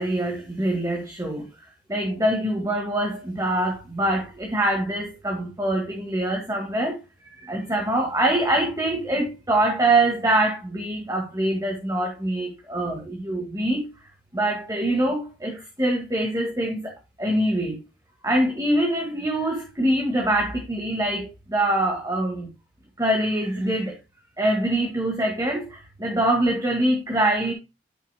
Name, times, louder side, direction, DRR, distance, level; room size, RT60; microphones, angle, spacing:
voice 1, 0.0-1.5 1.9-7.0 7.3-13.9 14.3-17.8 18.2-22.5 23.0-24.0 24.4-27.5, right 1 dB, 20° right, 1.9 m, -24 dB
11.5 x 6.4 x 2.2 m
head